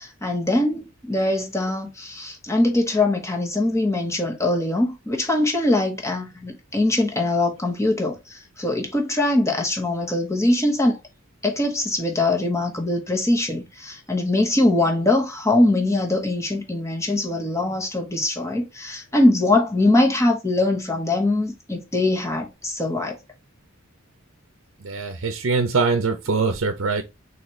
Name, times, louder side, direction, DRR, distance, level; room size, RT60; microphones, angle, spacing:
voice 1, 0.0-11.0 11.4-23.2, left 2 dB, 15° left, 1.1 m, -22 dB
voice 2, 24.8-27.0, right 4 dB, 70° right, 0.6 m, -23 dB
4.1 x 2.9 x 4.3 m
head